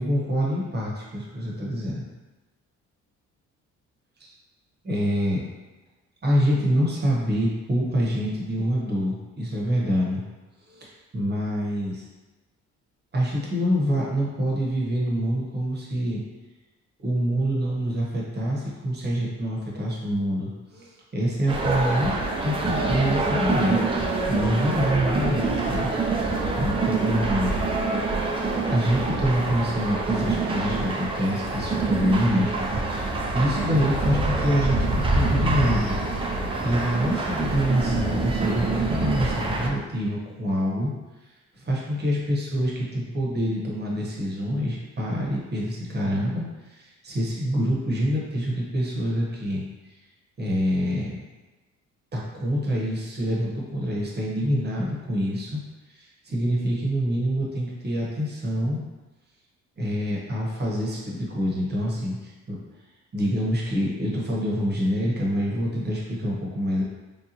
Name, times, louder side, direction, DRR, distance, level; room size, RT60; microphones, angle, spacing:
voice 1, 0.0-2.0 4.2-4.3 4.8-5.4 6.2-10.2 10.7-12.1 13.1-16.2 17.0-25.9 26.1-27.5 28.6-36.0 36.6-40.9 41.5-49.6 50.4-51.2 52.1-55.6 55.9-58.8 59.8-62.6 63.1-66.8, equal, 35° right, -4 dB, 1.0 m, -26 dB
sound 1, 21.5-39.7, right 3 dB, 20° right, 0.5 m, -26 dB
3.4 x 2.7 x 2.9 m, 1.2 s
cardioid pair, 90°, 30 cm